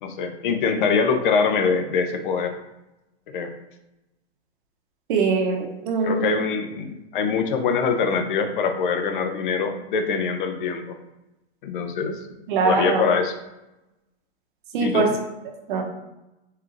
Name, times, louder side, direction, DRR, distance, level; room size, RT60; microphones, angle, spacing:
voice 1, 0.0-2.5 3.3-3.5 6.0-11.0 11.6-12.2 12.6-13.3 14.8-15.1, left 5 dB, 50° left, 6 dB, 0.6 m, -23 dB
voice 2, 5.1-6.4 12.5-13.0 14.7-15.1 15.7-15.8, right 4 dB, 50° right, 2 dB, 0.9 m, -22 dB
4.3 x 3.7 x 2.5 m, 0.95 s
hypercardioid pair, 145°, 32 cm